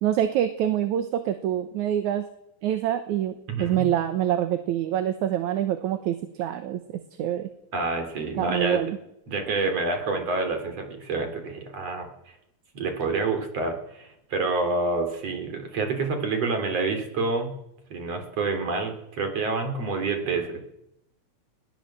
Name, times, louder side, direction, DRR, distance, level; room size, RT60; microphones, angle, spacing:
voice 1, 0.0-2.2 2.6-6.8 7.2-7.5 8.4-9.0, right 11 dB, 75° right, 9 dB, 2.5 m, -26 dB
voice 2, 3.5-3.8 7.7-8.8 9.3-12.3 12.7-17.5 17.9-20.6, right 3 dB, 55° right, 5 dB, 4.4 m, -28 dB
21.0 x 17.0 x 7.6 m, 0.80 s
omnidirectional pair, 3.4 m